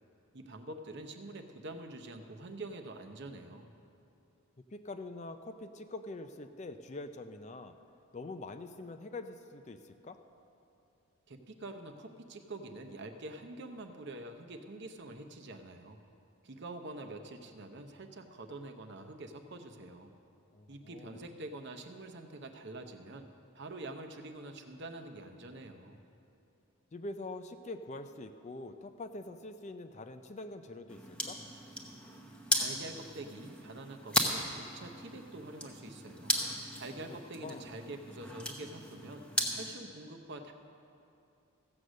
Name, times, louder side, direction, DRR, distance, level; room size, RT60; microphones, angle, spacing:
voice 1, 0.3-3.7 11.3-16.0 16.4-20.1 20.7-23.3 23.5-26.0 32.5-36.4 36.8-40.5, right 2 dB, 55° right, 6 dB, 0.8 m, -46 dB
voice 2, 4.7-7.8 8.1-10.2 20.5-21.2 26.9-31.4 37.0-37.2 37.4-37.7, left 2 dB, 30° left, 9 dB, 0.4 m, -44 dB
sound 1, 30.9-39.7, equal, 5° left, 0.9 m, -36 dB
15.0 x 8.0 x 6.3 m, 2.7 s
head